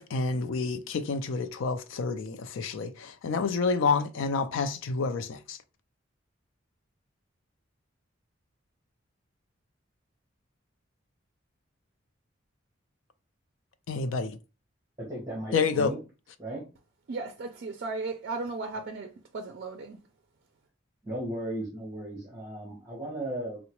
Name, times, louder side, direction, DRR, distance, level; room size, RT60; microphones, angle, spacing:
voice 1, 0.0-5.6 13.9-14.4 15.5-15.9, left 4 dB, 75° left, 0.4 m, -29 dB
voice 2, 15.0-16.0 16.4-16.6 21.0-23.6, right 1 dB, 15° right, 0.9 m, -36 dB
voice 3, 17.1-20.0, right 3 dB, 55° right, 0.4 m, -36 dB
3.7 x 2.0 x 2.9 m
head